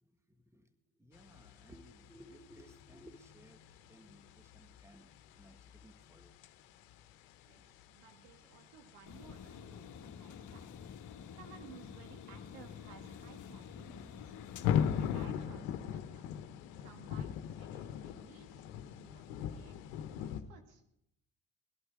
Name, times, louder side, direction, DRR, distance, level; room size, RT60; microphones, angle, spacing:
voice 1, 0.0-6.3 11.2-11.4, equal, 5° right, 9 dB, 1.5 m, -59 dB
sound 1, 1.1-20.4, left 9 dB, 80° left, 1.0 m, -42 dB
voice 2, 7.9-10.7 11.3-14.3 14.7-16.3 16.8-18.7 19.0-19.8 20.1-20.8, right 7 dB, 85° right, 5 dB, 1.9 m, -58 dB
sound 2, 9.1-15.3, left 7 dB, 50° left, 1.3 m, -49 dB
19.0 x 11.5 x 4.9 m, 0.77 s
hypercardioid pair, 65°, 39 cm